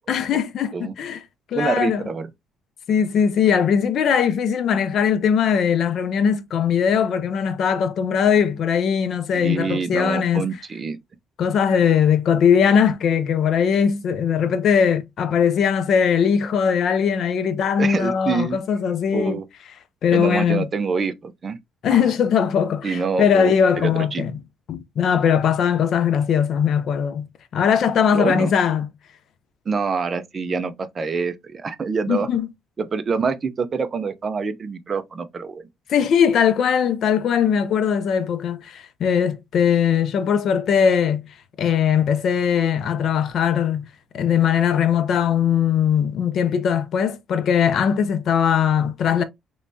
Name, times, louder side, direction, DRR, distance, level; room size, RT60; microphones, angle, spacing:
voice 1, 0.1-1.2 1.5-2.0 2.9-10.5 11.4-19.4 20.0-20.7 21.8-24.4 24.7-28.9 32.1-32.5 35.9-41.2 41.6-43.9 44.1-49.2, left 7 dB, 55° left, 0.5 m, -20 dB
voice 2, 1.5-2.3 9.3-11.0 17.8-18.6 19.1-19.5 20.1-21.6 21.9-22.1 22.8-23.5 23.8-24.2 28.1-28.5 29.7-32.3 32.8-35.6, right 5 dB, 30° right, 0.4 m, -26 dB
3.3 x 3.1 x 2.6 m
cardioid pair, 150°, 0 cm